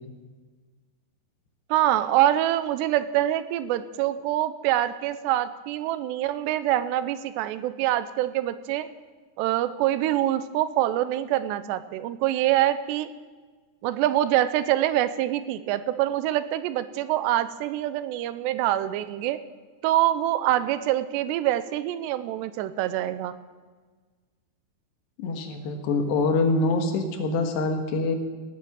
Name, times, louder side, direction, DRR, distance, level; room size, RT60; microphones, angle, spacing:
voice 1, 1.7-8.9 9.4-13.1 13.8-19.4 19.8-23.4, right 13 dB, 90° right, 13 dB, 2.9 m, -25 dB
voice 2, 25.2-28.2, left 3 dB, 85° left, 5 dB, 3.6 m, -25 dB
17.5 x 8.5 x 8.1 m, 1.4 s
omnidirectional pair, 4.8 m